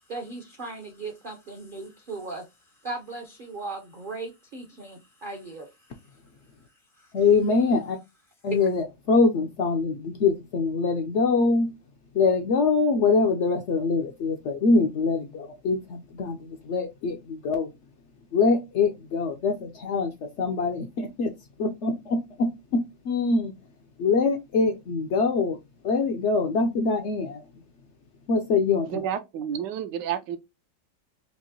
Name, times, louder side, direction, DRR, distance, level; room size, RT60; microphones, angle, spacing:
voice 1, 0.1-2.4 2.8-6.0 7.0-7.1 8.6-8.7, right 3 dB, 60° right, 0.5 m, -38 dB
voice 2, 7.1-8.0 8.4-11.7 12.1-17.7 18.3-21.3 21.6-23.5 24.0-25.6 25.8-27.4 28.3-29.0, left 4 dB, 75° left, 0.6 m, -24 dB
voice 3, 28.8-30.4, right 9 dB, 85° right, 1.2 m, -30 dB
4.5 x 2.9 x 2.7 m
omnidirectional pair, 1.9 m